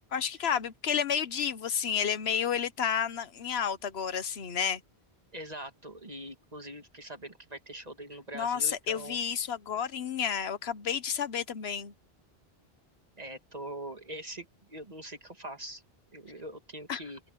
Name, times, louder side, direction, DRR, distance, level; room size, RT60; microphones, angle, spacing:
voice 1, 0.1-4.8 8.3-11.9 16.9-17.0, left 7 dB, 75° left, 1.2 m, -31 dB
voice 2, 5.3-9.2 13.2-15.8 16.1-17.2, right 1 dB, 40° right, 2.4 m, -43 dB
open air
omnidirectional pair, 1.1 m